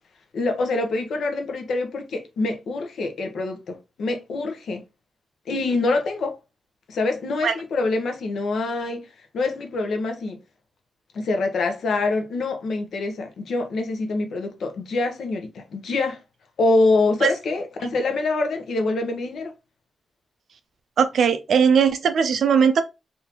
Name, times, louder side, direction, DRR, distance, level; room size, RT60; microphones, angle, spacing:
voice 1, 0.3-4.8 5.5-6.4 6.9-9.0 9.3-10.4 11.1-16.2 16.6-19.5, left 3 dB, 75° left, 0.8 m, -25 dB
voice 2, 21.0-22.8, right 6 dB, 75° right, 0.5 m, -19 dB
3.5 x 2.7 x 2.8 m
wide cardioid pair, 110°, 0 cm